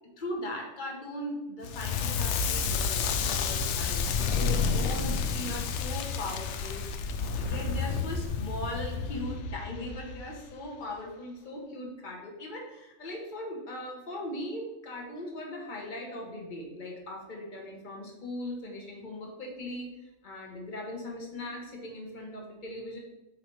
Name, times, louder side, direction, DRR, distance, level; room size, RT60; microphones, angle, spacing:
voice 1, 0.2-6.8 7.1-23.0, left 1 dB, 40° left, 0 dB, 1.3 m, -39 dB
Crackle, 1.6-10.6, left 5 dB, 70° left, 0.9 m, -30 dB
7.4 x 2.9 x 4.7 m, 1.0 s
omnidirectional pair, 1.3 m